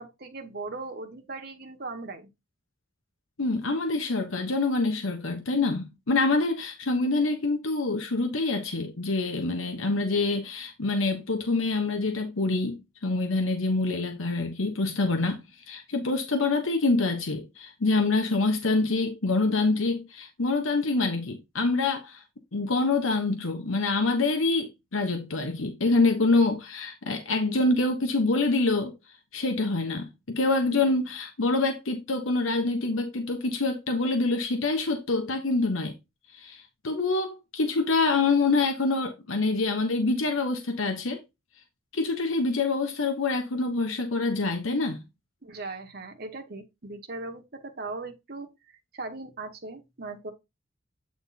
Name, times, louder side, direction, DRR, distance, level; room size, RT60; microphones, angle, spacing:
voice 1, 0.0-2.3 45.4-48.5 48.9-50.3, right 3 dB, 50° right, 1.4 m, -38 dB
voice 2, 3.4-22.2 22.5-28.9 29.3-35.9 36.3-41.2 41.9-45.0, left 3 dB, 85° left, 1.1 m, -26 dB
8.7 x 3.5 x 4.2 m
head